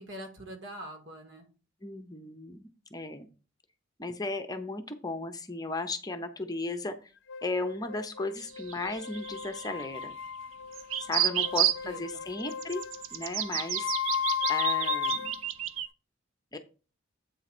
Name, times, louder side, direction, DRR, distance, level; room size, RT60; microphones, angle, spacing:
voice 1, 0.0-1.5 11.1-11.5 11.8-12.2, right 1 dB, 65° right, 3 dB, 2.1 m, -44 dB
voice 2, 1.8-3.3 4.0-7.1 7.4-10.1 11.0-12.8 13.1-13.9 14.5-15.3 16.5-16.6, left 2 dB, 20° left, 7 dB, 0.7 m, -35 dB
sound 1, 7.3-15.5, left 8 dB, 65° left, 0.6 m, -35 dB
sound 2, 8.4-10.0 10.7-11.8 12.5-15.9, right 11 dB, 85° right, 0.6 m, -31 dB
8.2 x 3.8 x 6.0 m, 0.34 s
head